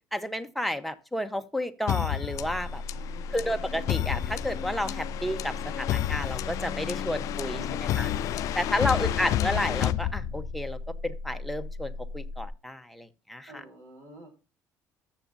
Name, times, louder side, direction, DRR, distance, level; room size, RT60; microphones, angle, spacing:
voice 1, 0.1-2.8 3.3-8.1 8.5-10.8 11.0-13.6, left 1 dB, ahead, 6 dB, 0.9 m, -31 dB
sound 1, 1.9-10.7, left 13 dB, 60° left, 0.4 m, -31 dB
sound 2, 2.3-12.5, left 2 dB, 80° right, 4.2 m, -38 dB
voice 2, 2.9-3.7 7.5-8.4 8.9-9.4 13.5-14.3, right 1 dB, 55° right, 1 dB, 4.7 m, -48 dB
14.0 x 7.3 x 2.6 m, 0.31 s
cardioid pair, 130°, 6 cm